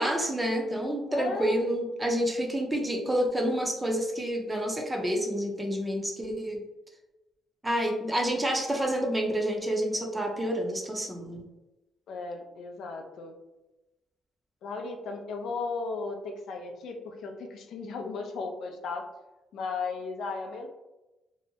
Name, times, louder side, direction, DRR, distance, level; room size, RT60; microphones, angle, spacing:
voice 1, 0.0-6.6 7.6-11.4, equal, 15° right, 1 dB, 0.6 m, -28 dB
voice 2, 1.1-1.6 12.1-13.3 14.6-19.0 19.5-20.7, left 4 dB, 75° left, 3 dB, 0.4 m, -35 dB
2.7 x 2.1 x 2.6 m, 1.0 s
cardioid pair, 90°, 0 cm